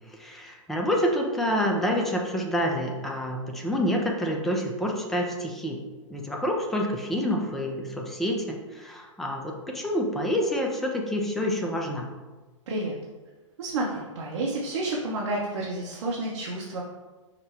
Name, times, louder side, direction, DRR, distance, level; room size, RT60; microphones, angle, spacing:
voice 1, 0.1-5.8 6.1-12.1, equal, ahead, 0 dB, 0.4 m, -28 dB
voice 2, 13.6-16.8, right 2 dB, 60° right, -3 dB, 0.8 m, -30 dB
5.1 x 2.2 x 4.3 m, 1.3 s
figure-of-eight pair, 110°, 17 cm